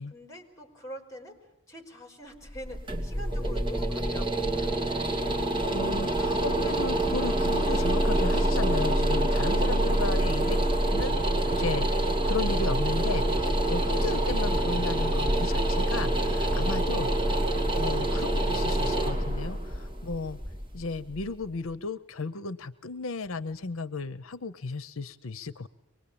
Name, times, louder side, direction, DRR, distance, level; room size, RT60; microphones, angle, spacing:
voice 1, 0.1-1.4 1.7-4.8, equal, 15° left, 4 dB, 4.9 m, -45 dB
sound 1, 2.5-21.4, right 1 dB, 25° right, 2.5 m, -26 dB
voice 2, 5.6-10.6 10.9-11.2 11.5-17.5 17.7-20.4 20.7-25.7, left 3 dB, 80° left, 14 dB, 0.8 m, -35 dB
24.5 x 20.5 x 8.6 m, 0.92 s
head